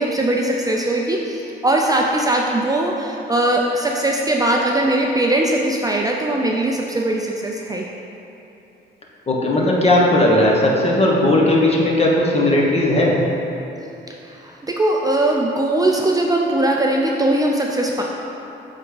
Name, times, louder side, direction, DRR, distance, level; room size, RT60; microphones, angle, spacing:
voice 1, 0.0-7.8 14.2-18.0, right 1 dB, 20° right, -1 dB, 0.4 m, -20 dB
voice 2, 9.3-13.1, left 1 dB, 30° left, -3 dB, 1.1 m, -16 dB
8.2 x 3.6 x 3.8 m, 2.9 s
cardioid pair, 100°, 19 cm